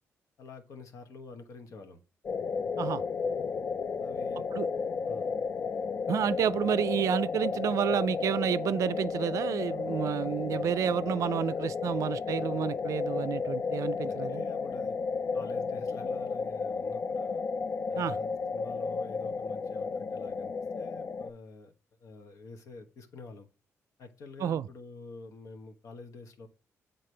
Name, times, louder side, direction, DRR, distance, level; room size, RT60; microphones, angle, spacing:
voice 1, 0.4-2.0 4.0-4.4 5.0-5.3 14.1-15.0 15.3-17.5 17.9-21.7 22.0-23.5 24.0-26.5, left 3 dB, 70° left, 1.1 m, -47 dB
sound 1, 2.2-21.3, left 5 dB, 50° left, 0.5 m, -33 dB
voice 2, 6.1-14.4 17.9-18.2 24.4-24.7, right 9 dB, 70° right, 0.4 m, -30 dB
7.7 x 4.0 x 3.2 m
cardioid pair, 80°, 6 cm